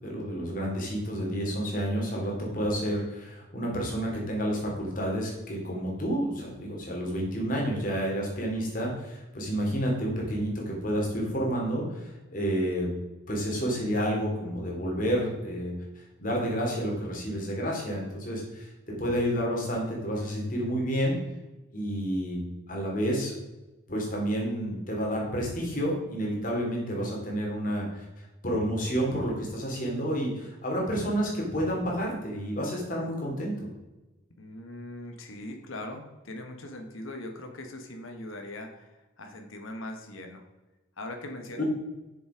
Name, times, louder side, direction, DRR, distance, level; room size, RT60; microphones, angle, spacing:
voice 1, 0.0-12.9 13.3-18.7 19.0-21.2 21.7-22.4 22.7-23.3 23.9-33.7 41.6-41.7, equal, 40° left, -2 dB, 2.8 m, -30 dB
voice 2, 34.4-40.5 41.0-41.6, left 1 dB, 80° left, 4 dB, 1.2 m, -40 dB
7.2 x 6.9 x 4.9 m, 1.1 s
head